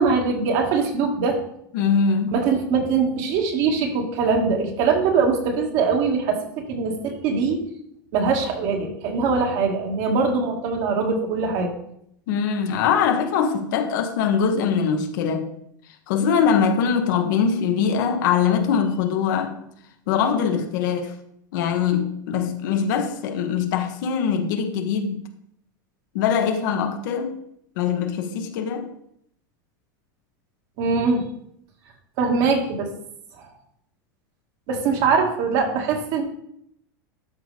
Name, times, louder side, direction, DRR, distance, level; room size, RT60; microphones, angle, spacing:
voice 1, 0.0-1.4 2.3-6.4 6.7-7.6 8.1-11.7 30.8-31.2 32.2-32.9 34.7-36.2, right 5 dB, 60° right, 2.1 m, -22 dB
voice 2, 1.7-2.3 12.3-15.5 16.1-19.6 20.1-21.1 21.5-25.2 26.1-27.4 27.8-28.9, left 6 dB, 70° left, 1.3 m, -22 dB
12.5 x 5.1 x 3.4 m
supercardioid pair, 120°, 11 cm